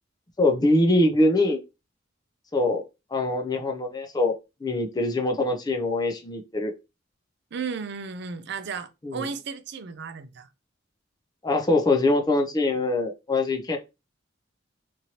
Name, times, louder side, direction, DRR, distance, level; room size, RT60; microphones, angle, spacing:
voice 1, 0.4-1.6 2.5-2.8 3.1-4.3 4.6-6.7 9.0-9.3 11.4-13.8, left 2 dB, 20° left, 0.5 m, -23 dB
voice 2, 7.5-10.5, right 5 dB, 60° right, 0.5 m, -34 dB
3.0 x 2.6 x 2.8 m
head